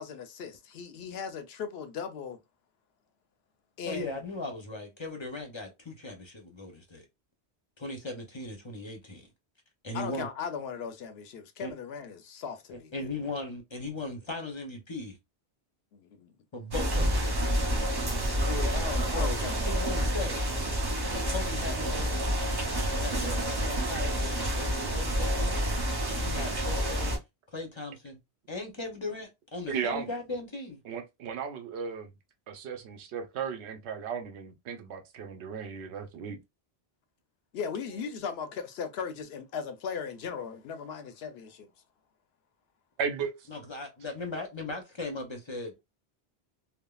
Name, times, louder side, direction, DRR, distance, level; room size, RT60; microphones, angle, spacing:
voice 1, 0.0-2.4 3.8-4.2 9.9-13.1 15.9-16.3 18.5-20.0 37.5-41.7, left 6 dB, 75° left, 0.8 m, -38 dB
voice 2, 3.8-7.1 7.8-9.3 9.8-10.3 11.6-11.7 12.7-15.2 16.5-17.2 19.1-19.4 19.7-20.5 21.1-22.2 22.9-27.2 27.5-28.2 28.5-30.8 43.5-45.9, left 2 dB, 35° left, 0.6 m, -38 dB
sound 1, 16.7-27.2, right 1 dB, 25° right, 0.6 m, -29 dB
voice 3, 29.7-30.1 30.8-32.1 32.5-36.4 43.0-43.5, right 6 dB, 85° right, 0.9 m, -35 dB
3.4 x 2.0 x 2.2 m
omnidirectional pair, 1.1 m